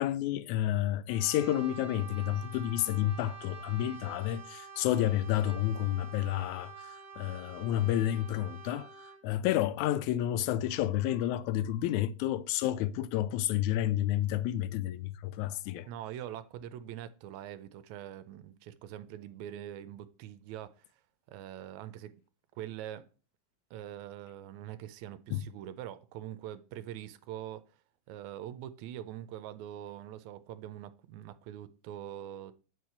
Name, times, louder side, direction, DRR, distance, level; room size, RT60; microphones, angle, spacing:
voice 1, 0.0-8.9 9.2-15.9 25.3-25.4, left 13 dB, 80° left, 1.7 m, -30 dB
Brass instrument, 1.1-9.3, right 6 dB, 35° right, 1.5 m, -48 dB
voice 2, 15.9-20.8 21.3-22.2 22.5-23.1 23.7-27.6 28.1-32.5, right 11 dB, 80° right, 1.8 m, -43 dB
8.4 x 4.8 x 5.7 m
omnidirectional pair, 3.8 m